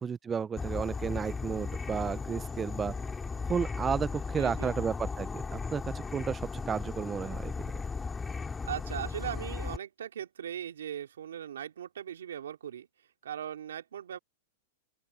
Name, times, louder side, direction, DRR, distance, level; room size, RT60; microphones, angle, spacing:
voice 1, 0.0-2.9 3.5-7.5, right 6 dB, 15° right, 0.6 m, -32 dB
Insect / Frog, 0.6-9.8, left 4 dB, 10° left, 3.2 m, -36 dB
voice 2, 4.4-4.8 8.7-12.9 13.2-14.2, right 9 dB, 90° right, 3.0 m, -39 dB
open air
hypercardioid pair, 140°, 0 cm